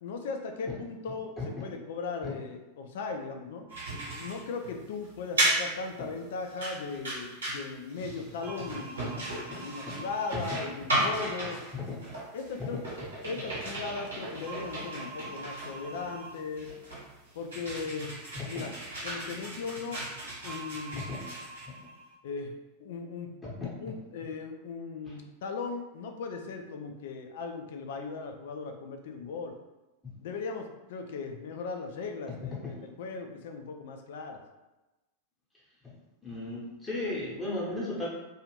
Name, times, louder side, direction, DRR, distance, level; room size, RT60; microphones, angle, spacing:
voice 1, 0.0-3.7 4.1-9.0 9.3-11.6 12.3-12.8 13.2-16.7 17.3-18.2 18.5-18.8 19.0-20.1 20.4-21.1 22.2-23.3 23.6-29.5 30.2-34.4, left 4 dB, 55° left, 4 dB, 0.3 m, -38 dB
sound 1, 3.7-22.1, right 1 dB, 75° right, 1.2 m, -35 dB
voice 2, 9.5-10.0 10.3-10.4 11.7-12.0 18.4-18.6 20.9-21.2 23.4-23.7 36.2-38.1, left 2 dB, 10° left, -6 dB, 0.9 m, -35 dB
2.5 x 2.4 x 3.0 m, 1.1 s
figure-of-eight pair, 90°, 0 cm